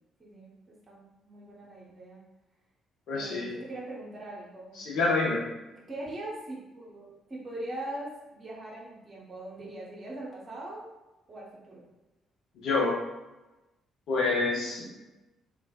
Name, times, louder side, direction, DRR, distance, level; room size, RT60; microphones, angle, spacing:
voice 1, 0.2-0.5 0.9-2.2 3.1-4.9 5.9-10.9 11.3-11.8 14.5-14.9, right 1 dB, 35° right, -4 dB, 1.0 m, -41 dB
voice 2, 3.1-3.5 4.8-5.4 12.6-13.0 14.1-14.8, left 3 dB, 60° left, -4 dB, 0.7 m, -27 dB
3.2 x 2.4 x 2.3 m, 1.1 s
figure-of-eight pair, 45°, 0 cm